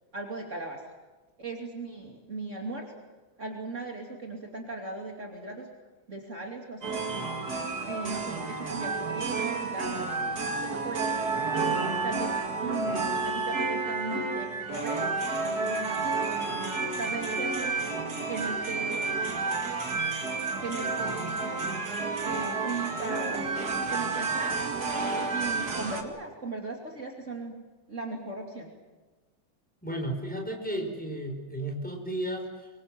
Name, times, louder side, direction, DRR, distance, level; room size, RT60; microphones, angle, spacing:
voice 1, 0.1-0.9 1.4-2.9 3.4-5.7 6.1-7.0 7.8-10.1 10.5-11.4 12.0-16.1 16.5-17.7 18.3-19.3 20.6-21.6 22.2-24.7 25.3-27.6 27.9-28.7, right 3 dB, 40° right, 1 dB, 3.1 m, -38 dB
sound 1, 6.8-26.0, right 4 dB, 55° right, 2.9 m, -30 dB
voice 2, 29.8-32.7, right 1 dB, 5° left, 2 dB, 4.9 m, -33 dB
25.5 x 23.5 x 7.7 m, 1.2 s
omnidirectional pair, 2.0 m